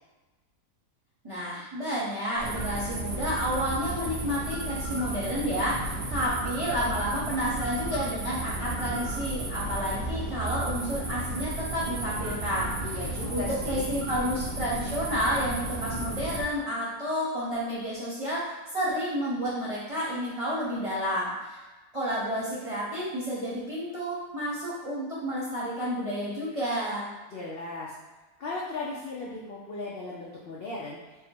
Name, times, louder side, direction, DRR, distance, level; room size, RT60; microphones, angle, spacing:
voice 1, 1.2-12.7 13.3-21.6 21.9-27.1, equal, 25° right, -8 dB, 0.8 m, -30 dB
Midwife toad extract, 2.4-16.4, right 2 dB, 70° right, 0.4 m, -33 dB
voice 2, 12.8-13.9 27.3-27.9 28.4-31.0, left 2 dB, 75° left, -5 dB, 0.5 m, -36 dB
3.5 x 2.1 x 4.3 m, 1.2 s
omnidirectional pair, 1.8 m